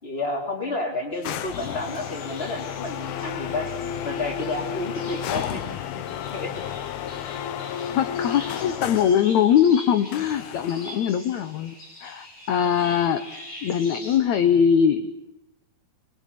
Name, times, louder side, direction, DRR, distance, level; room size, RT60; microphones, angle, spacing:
voice 1, 0.0-3.7 4.0-5.6 5.9-6.0 6.3-6.5, left 2 dB, 15° left, 3 dB, 3.4 m, -30 dB
sound 1, 1.1-14.2, left 1 dB, 45° left, 7.3 m, -44 dB
sound 2, 1.2-9.3 10.1-11.0, left 10 dB, 80° left, 3.0 m, -32 dB
voice 2, 7.9-11.8 12.0-13.2 13.6-15.2, left 8 dB, 65° left, 9 dB, 1.9 m, -21 dB
27.0 x 21.0 x 8.5 m, 0.87 s
omnidirectional pair, 4.4 m